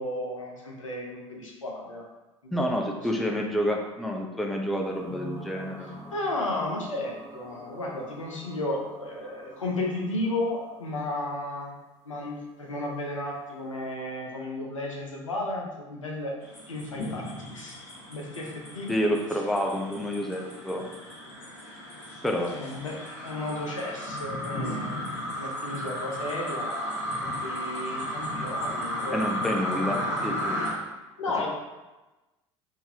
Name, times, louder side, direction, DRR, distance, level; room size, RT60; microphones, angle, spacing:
voice 1, 0.0-2.1 2.4-2.8 3.1-3.3 5.8-11.8 12.0-16.4 16.7-17.8 18.1-18.9 22.5-23.0 23.2-25.0 25.4-30.2 30.6-30.9 31.2-31.5, left 2 dB, 80° left, -2 dB, 0.6 m, -34 dB
voice 2, 2.5-6.0 18.9-20.8 22.2-22.6 29.1-30.6, equal, ahead, 1 dB, 0.4 m, -28 dB
sound 1, 4.8-12.4, equal, 20° left, 1.2 m, -47 dB
sound 2, 16.4-30.7, equal, 60° left, 1.3 m, -34 dB
3.7 x 2.6 x 2.8 m, 1.1 s
figure-of-eight pair, 70°, 16 cm